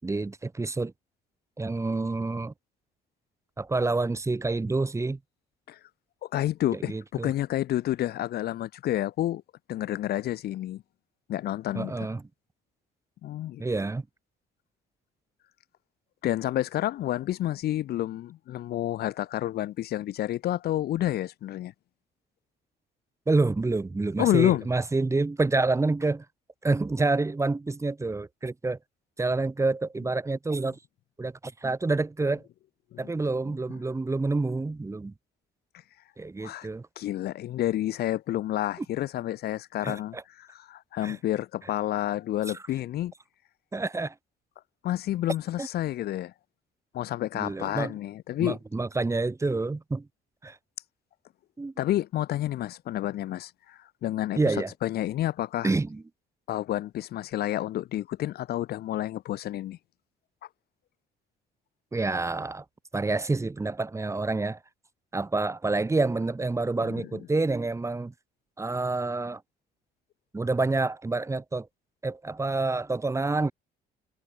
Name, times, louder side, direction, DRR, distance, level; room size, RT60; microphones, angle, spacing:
voice 1, 0.0-0.9 1.6-2.5 3.6-5.2 6.9-7.3 11.7-12.3 13.6-14.0 23.3-26.2 26.6-28.8 29.2-30.8 31.2-32.4 33.0-35.1 36.2-36.9 39.8-40.2 41.0-41.2 43.7-44.1 45.6-45.7 47.3-47.9 48.4-50.1 50.4-50.6 51.6-51.7 54.4-54.7 55.6-56.0 61.9-62.6 62.9-64.6 65.1-68.1 68.6-69.4 70.3-71.7 72.0-73.5, right 3 dB, 15° right, 5.6 m, -28 dB
voice 2, 6.2-9.4 9.7-10.8 11.3-11.9 13.2-13.6 16.2-21.7 24.2-24.7 32.9-33.0 36.4-36.7 37.0-43.1 44.8-46.3 46.9-48.6 51.8-55.7 56.5-59.8 66.9-67.1, left 13 dB, 70° left, 5.9 m, -29 dB
cardioid pair, 110°, 17 cm